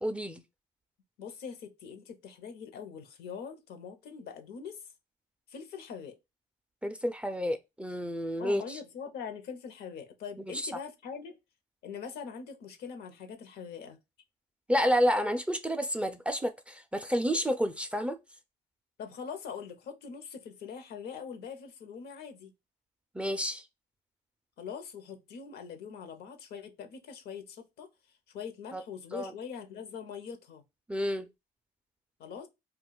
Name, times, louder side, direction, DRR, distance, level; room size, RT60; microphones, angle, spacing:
voice 1, 0.0-0.4 6.8-8.8 10.5-10.7 14.7-18.2 23.1-23.6 28.7-28.8 29.1-29.3 30.9-31.3, equal, 5° right, 0.3 m, -30 dB
voice 2, 1.2-4.8 5.5-6.2 8.4-11.4 11.8-14.0 19.0-22.5 24.6-27.9 28.3-30.6 32.2-32.5, left 6 dB, 75° left, 0.7 m, -42 dB
2.4 x 2.2 x 3.7 m
cardioid pair, 110°, 17 cm